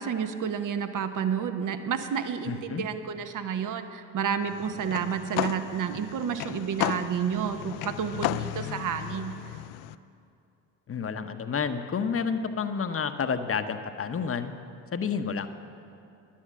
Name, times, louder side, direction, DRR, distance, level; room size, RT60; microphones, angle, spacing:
voice 1, 0.0-9.4, right 7 dB, 50° right, 9 dB, 1.0 m, -30 dB
voice 2, 2.5-2.8 10.9-14.5 14.9-15.5, left 6 dB, 35° left, 9 dB, 0.9 m, -30 dB
sound 1, 4.5-9.9, left 14 dB, 70° left, 0.5 m, -34 dB
10.5 x 10.0 x 7.4 m, 2.6 s
hypercardioid pair, 60°, 39 cm